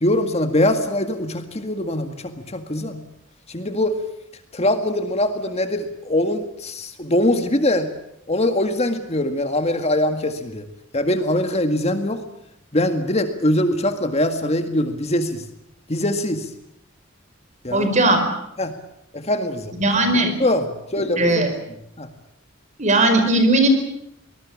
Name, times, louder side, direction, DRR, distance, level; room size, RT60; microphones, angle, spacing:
voice 1, 0.0-3.0 3.5-4.0 4.5-7.9 8.3-10.7 10.9-12.2 12.7-15.4 15.9-16.5 17.6-17.9 18.6-18.7 19.1-19.7 20.4-21.5 22.0-22.1, left 1 dB, 30° left, 7 dB, 1.9 m, -22 dB
voice 2, 17.7-18.2 19.8-20.3 21.2-21.5 22.8-23.7, right 2 dB, 35° right, 7 dB, 4.8 m, -17 dB
24.5 x 20.0 x 8.6 m, 0.79 s
head